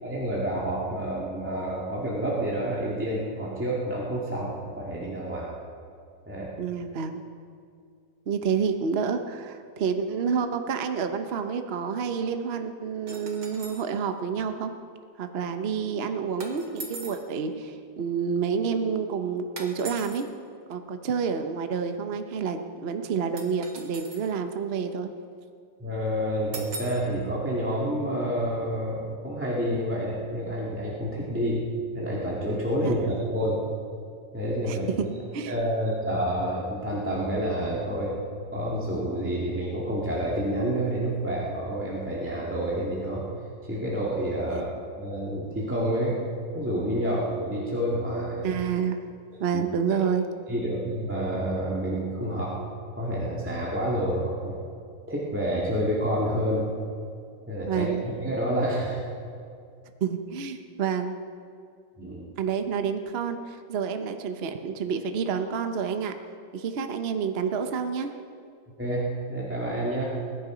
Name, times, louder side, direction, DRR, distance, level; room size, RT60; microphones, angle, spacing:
voice 1, 0.0-5.5 6.3-6.5 25.8-31.7 31.9-33.6 34.3-35.1 35.5-38.1 38.5-43.2 43.7-44.7 45.0-46.2 46.5-48.5 49.5-49.6 49.9-50.0 50.5-52.6 53.0-54.6 55.1-56.7 57.5-57.9 58.2-59.0 62.0-62.3 68.8-70.0, equal, 5° right, -6 dB, 1.9 m, -28 dB
voice 2, 6.6-7.2 8.3-14.7 15.2-20.3 20.7-25.1 32.8-32.9 34.7-35.1 35.3-35.5 44.5-44.6 48.4-49.0 49.4-50.3 57.7-58.0 60.0-61.2 62.4-66.1 66.5-68.1, right 6 dB, 50° right, 7 dB, 0.8 m, -29 dB
sound 1, 13.1-13.9 16.4-17.3 19.6-20.2 23.4-24.3 26.5-27.1, right 3 dB, 80° right, 2.1 m, -40 dB
21.0 x 10.0 x 5.0 m, 2.3 s
omnidirectional pair, 1.8 m